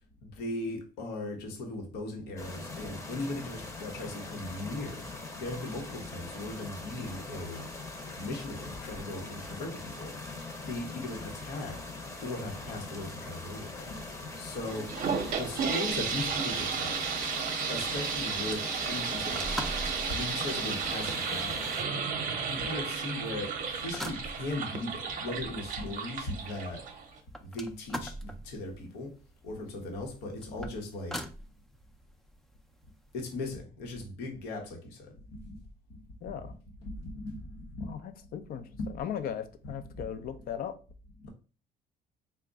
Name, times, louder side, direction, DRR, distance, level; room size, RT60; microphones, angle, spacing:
voice 1, 0.2-5.1 5.4-7.7 8.2-10.2 10.6-11.9 12.2-15.0 15.3-17.0 17.7-21.8 22.5-26.9 27.4-29.2 29.4-31.3 33.1-35.6 35.9-36.5 36.8-38.3 38.7-38.9 40.0-40.1 41.2-41.3, left 2 dB, 90° left, 1.0 m, -38 dB
sound 1, 2.4-21.8, left 3 dB, 20° left, 0.8 m, -42 dB
sound 2, 14.7-27.2, right 5 dB, 55° right, 0.7 m, -33 dB
sound 3, 19.2-33.3, equal, ahead, 0.4 m, -45 dB
voice 2, 36.2-36.5 37.8-38.7 39.0-40.8, left 9 dB, 60° left, 0.5 m, -37 dB
3.9 x 2.2 x 3.4 m
cardioid pair, 110°, 17 cm